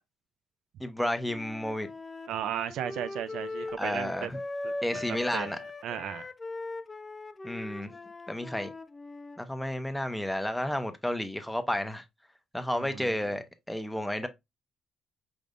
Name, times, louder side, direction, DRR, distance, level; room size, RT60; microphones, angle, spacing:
voice 1, 0.8-1.9 3.8-4.4 4.8-5.6 7.4-7.9 8.3-8.7 9.4-12.0 12.5-14.3, left 1 dB, 5° left, 0.8 m, -31 dB
Wind instrument woodwind instrument, 1.2-9.4, left 2 dB, 25° left, 0.4 m, -40 dB
voice 2, 2.3-4.3 4.6-5.5 5.8-6.3 12.8-13.3, right 10 dB, 80° right, 0.4 m, -36 dB
5.2 x 3.2 x 2.5 m
cardioid pair, 90°, 0 cm